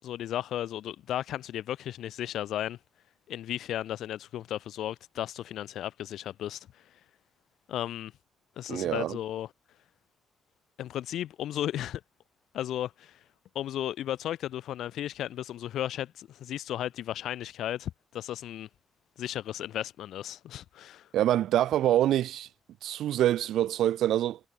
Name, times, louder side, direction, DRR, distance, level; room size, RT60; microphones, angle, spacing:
voice 1, 0.0-2.8 3.3-7.0 7.7-8.1 8.6-9.5 10.8-12.0 12.5-13.2 13.5-18.7 19.2-21.1, left 12 dB, 80° left, 4.2 m, -35 dB
voice 2, 8.7-9.2 21.1-22.5 22.8-24.4, right 12 dB, 85° right, 1.1 m, -25 dB
cardioid pair, 110°, 0 cm